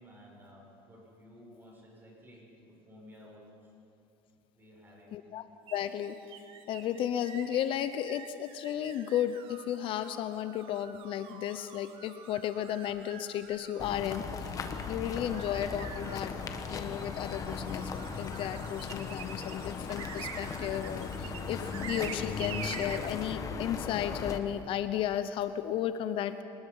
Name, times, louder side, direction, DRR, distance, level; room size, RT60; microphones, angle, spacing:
voice 1, 0.0-3.4 4.5-5.2, equal, 20° right, -2 dB, 6.7 m, -54 dB
voice 2, 5.1-5.4 5.7-6.2 6.7-14.6 14.9-16.3 16.7-26.4, left 10 dB, 50° left, 11 dB, 0.7 m, -34 dB
sound 1, 5.7-23.3, right 8 dB, 50° right, 1.6 m, -47 dB
sound 2, 13.8-24.4, left 5 dB, 30° left, 1.4 m, -38 dB
23.5 x 20.0 x 5.5 m, 2.7 s
cardioid pair, 130°, 12 cm